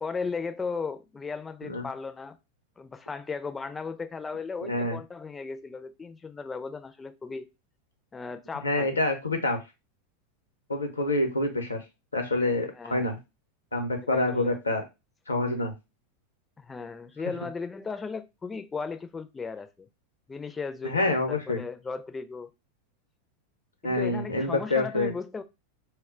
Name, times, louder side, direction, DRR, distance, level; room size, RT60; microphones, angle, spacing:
voice 1, 0.0-2.4 2.8-7.5 8.1-9.0 12.8-13.1 14.1-14.6 16.6-19.9 20.3-22.5 23.8-25.4, left 4 dB, 15° left, 0.3 m, -36 dB
voice 2, 4.6-5.0 8.6-9.6 10.7-11.8 12.1-13.2 13.7-14.8 15.3-15.7 20.8-21.6 23.8-25.1, left 2 dB, 90° left, 0.6 m, -27 dB
2.1 x 2.0 x 3.7 m
figure-of-eight pair, 90°, 0 cm